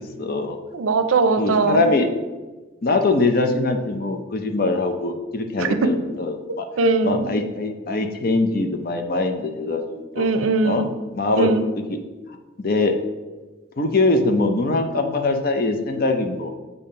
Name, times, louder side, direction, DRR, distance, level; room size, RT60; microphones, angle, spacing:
voice 1, 0.0-0.6 1.4-2.1 2.8-6.7 7.0-10.3 10.6-10.8 11.1-11.5 11.9-12.0 12.6-13.0 13.8-16.5, left 2 dB, 45° left, 6 dB, 0.6 m, -22 dB
voice 2, 0.7-1.9 5.6-5.9 6.8-7.4 10.2-10.9 11.4-11.6, right 3 dB, 90° right, 9 dB, 0.5 m, -20 dB
6.9 x 2.8 x 5.5 m, 1.2 s
head